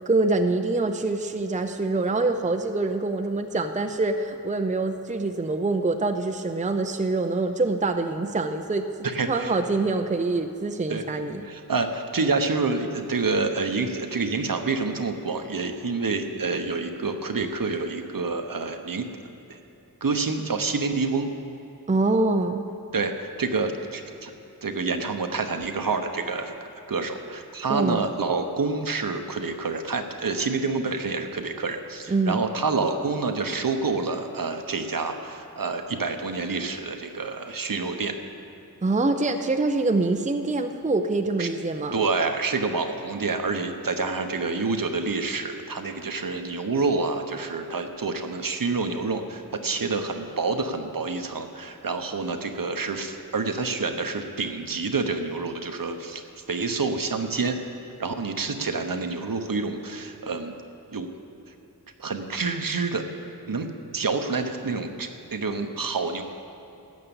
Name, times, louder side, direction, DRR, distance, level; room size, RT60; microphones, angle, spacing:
voice 1, 0.1-8.9 9.3-11.4 21.9-22.6 27.7-28.0 32.1-32.4 38.8-42.0, right 3 dB, 20° right, 6 dB, 0.6 m, -25 dB
voice 2, 9.0-9.5 10.9-11.0 11.4-19.0 19.5-19.6 20.0-21.3 22.9-24.3 24.6-26.5 26.9-38.2 41.4-41.5 41.9-56.2 56.5-57.6 58.0-60.5 60.9-61.1 62.0-63.0 63.5-63.7 63.9-66.2, right 4 dB, 55° right, 6 dB, 1.0 m, -28 dB
13.0 x 8.4 x 7.0 m, 2.9 s
wide cardioid pair, 50°, 39 cm